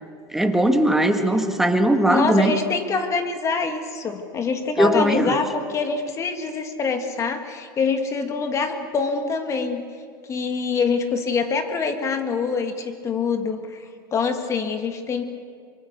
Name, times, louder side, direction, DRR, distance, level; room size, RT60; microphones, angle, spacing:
voice 1, 0.3-2.5 4.8-5.4, right 1 dB, 5° right, 5 dB, 1.8 m, -19 dB
voice 2, 2.1-9.8 10.3-13.8 14.1-15.2, left 5 dB, 25° left, 6 dB, 2.0 m, -25 dB
24.0 x 23.5 x 6.9 m, 2.1 s
supercardioid pair, 135°, 11 cm